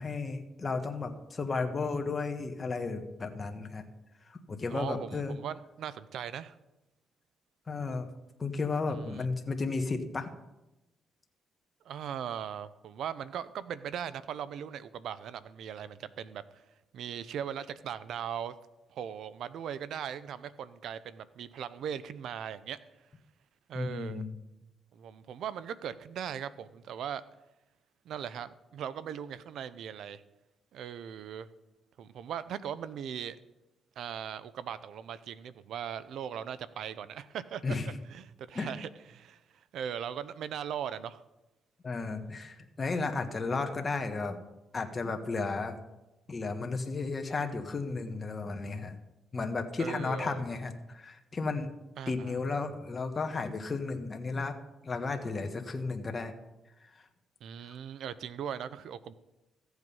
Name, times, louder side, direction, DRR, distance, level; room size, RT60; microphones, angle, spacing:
voice 1, 0.0-3.8 4.3-5.4 7.7-8.1 8.4-10.3 23.7-24.3 37.6-37.9 38.5-38.7 41.8-44.4 44.7-45.8 46.3-48.9 49.3-51.7 52.1-54.6 54.8-56.3 56.8-56.9 57.7-57.8, left 3 dB, 30° left, 5 dB, 1.5 m, -33 dB
voice 2, 4.7-6.5 9.0-9.3 11.8-16.6 16.9-18.5 18.9-22.8 23.7-24.2 24.9-27.2 28.0-30.2 30.7-31.5 32.0-33.4 34.0-37.8 38.1-41.2 49.8-50.4 52.0-52.4 57.4-59.1, right 8 dB, 70° right, 15 dB, 0.6 m, -39 dB
14.5 x 8.1 x 5.5 m, 0.98 s
cardioid pair, 90°, 0 cm